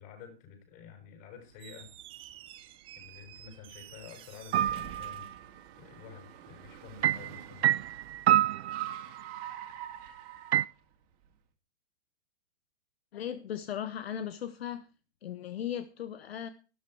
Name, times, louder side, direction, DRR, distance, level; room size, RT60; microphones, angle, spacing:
voice 1, 0.0-1.9 3.0-5.3 5.8-7.8, left 7 dB, 35° left, 6.8 m, -50 dB
Squeak, 1.5-6.2, right 12 dB, 15° right, 0.8 m, -51 dB
Car, 1.5-11.3, right 10 dB, 40° right, 2.4 m, -49 dB
sound 1, 4.5-5.3 7.0-9.4 10.5-10.7, right 12 dB, 80° right, 0.5 m, -27 dB
voice 2, 13.1-14.9 15.2-16.5, left 9 dB, 70° left, 1.0 m, -37 dB
12.5 x 12.0 x 4.6 m
hypercardioid pair, 150°, 32 cm